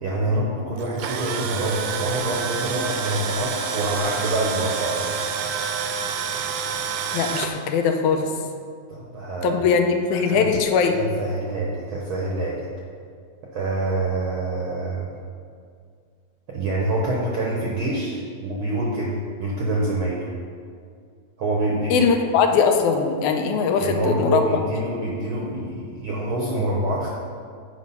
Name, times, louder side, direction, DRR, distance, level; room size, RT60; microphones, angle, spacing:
voice 1, 0.0-5.1 8.9-9.6 10.1-10.5 10.9-12.7 13.5-15.1 16.5-20.3 21.4-22.2 23.8-27.1, right 2 dB, 65° right, -3 dB, 1.3 m, -26 dB
Tools, 0.8-7.5, right 6 dB, 80° right, 1.9 m, -28 dB
voice 2, 7.1-8.3 9.4-11.0 21.9-24.4, left 5 dB, 90° left, 5 dB, 2.1 m, -20 dB
8.1 x 5.2 x 5.5 m, 2.2 s
omnidirectional pair, 3.4 m